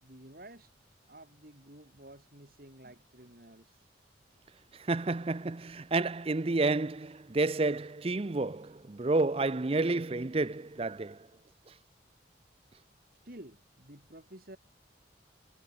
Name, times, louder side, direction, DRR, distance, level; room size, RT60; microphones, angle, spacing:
voice 1, 0.0-0.7 1.1-3.9 13.2-14.6, right 1 dB, 50° right, 4.3 m, -52 dB
voice 2, 4.7-11.2, right 3 dB, 30° right, 0.5 m, -30 dB
head